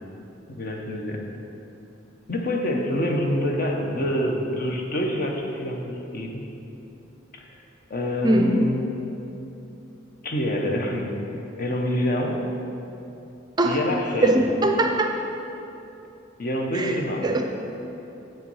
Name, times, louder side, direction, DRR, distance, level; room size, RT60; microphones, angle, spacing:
voice 1, 0.5-1.3 2.3-6.5 7.3-7.6 7.9-8.9 10.2-11.1 11.6-12.4 13.6-14.4 16.4-17.3, left 1 dB, 50° left, 1 dB, 0.9 m, -26 dB
voice 2, 14.2-15.2 16.7-17.0 17.2-17.4, right 2 dB, 20° right, 3 dB, 0.4 m, -21 dB
7.5 x 5.6 x 5.5 m, 2.9 s
head